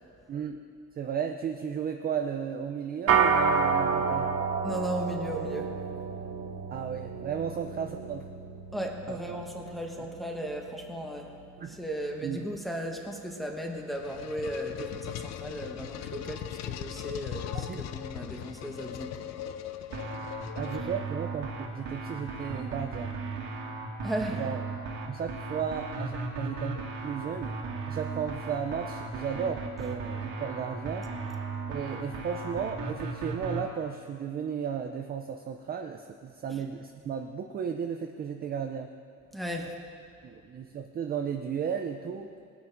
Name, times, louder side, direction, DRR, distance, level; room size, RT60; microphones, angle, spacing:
voice 1, 0.3-0.6 1.0-4.3 6.7-8.3 9.1-9.4 11.6-11.8 12.2-12.5 17.5-17.8 20.6-23.1 24.3-24.6 25.1-27.6 27.9-31.1 31.7-38.9 40.2-42.3, right 7 dB, 30° right, 5 dB, 0.4 m, -34 dB
sound 1, 3.1-12.6, right 5 dB, 50° right, 0.9 m, -31 dB
voice 2, 4.6-5.8 8.7-11.4 11.7-19.3 24.0-24.4 36.5-36.6 39.3-39.8, equal, ahead, 1 dB, 1.0 m, -36 dB
sound 2, 13.5-21.3, left 11 dB, 55° left, 0.6 m, -39 dB
sound 3, 19.9-33.6, right 3 dB, 85° right, 2.1 m, -36 dB
20.0 x 9.3 x 4.5 m, 2.4 s
cardioid pair, 180°, 32 cm